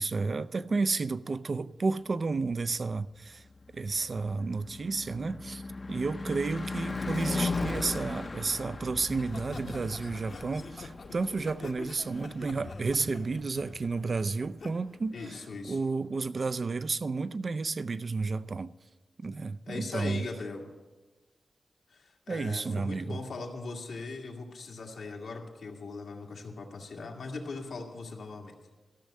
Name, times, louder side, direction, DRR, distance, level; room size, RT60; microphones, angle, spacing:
voice 1, 0.0-3.4 3.7-5.6 5.9-15.4 15.7-18.7 19.2-20.2 22.3-23.2, right 4 dB, 50° right, 0.4 m, -31 dB
Car passing by / Truck / Engine, 3.2-13.5, left 3 dB, 40° left, 0.6 m, -38 dB
Laughter, 9.0-14.7 15.1-15.4, left 3 dB, 65° left, 1.1 m, -45 dB
voice 2, 15.1-15.8 19.7-20.6 21.9-28.5, left 3 dB, 90° left, 1.8 m, -40 dB
13.5 x 6.4 x 8.4 m
wide cardioid pair, 85°, 0 cm